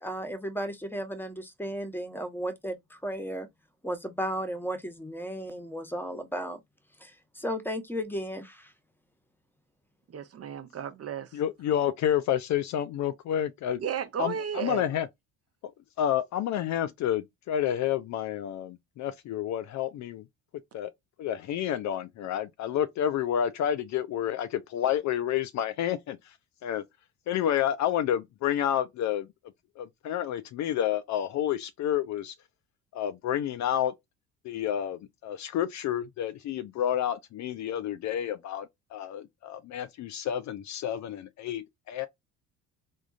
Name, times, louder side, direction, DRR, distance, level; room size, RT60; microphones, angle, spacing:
voice 1, 0.0-3.5 3.8-6.6 7.0-8.7, equal, 5° left, 1.0 m, -34 dB
voice 2, 10.1-11.3 13.8-14.8, right 8 dB, 40° right, 0.8 m, -33 dB
voice 3, 11.3-13.8 14.2-15.1 15.6-15.7 16.0-20.2 20.7-20.9 21.2-26.4 26.6-26.8 27.3-29.3 29.8-32.3 32.9-33.9 34.4-42.1, left 10 dB, 45° left, 0.4 m, -29 dB
3.5 x 2.5 x 2.5 m
hypercardioid pair, 60°, 40 cm